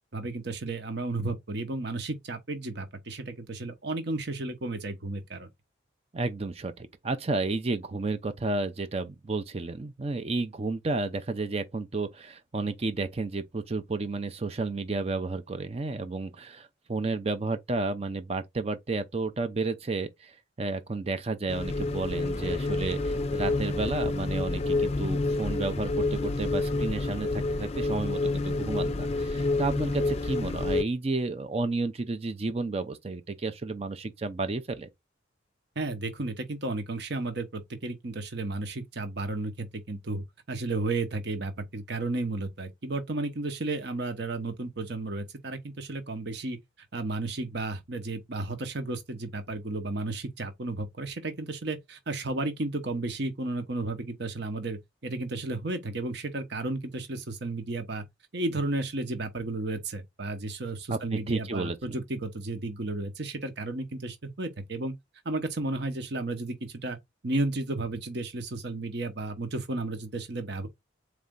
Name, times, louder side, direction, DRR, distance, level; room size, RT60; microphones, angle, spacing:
voice 1, 0.1-5.5 35.8-46.6 46.9-58.0 58.3-64.9 65.2-67.0 67.2-70.7, right 2 dB, 55° right, 1.0 m, -33 dB
voice 2, 6.1-34.9 60.9-62.0, right 3 dB, 30° right, 0.5 m, -32 dB
sound 1, 21.5-30.8, left 2 dB, 30° left, 0.4 m, -28 dB
4.2 x 3.3 x 3.7 m
head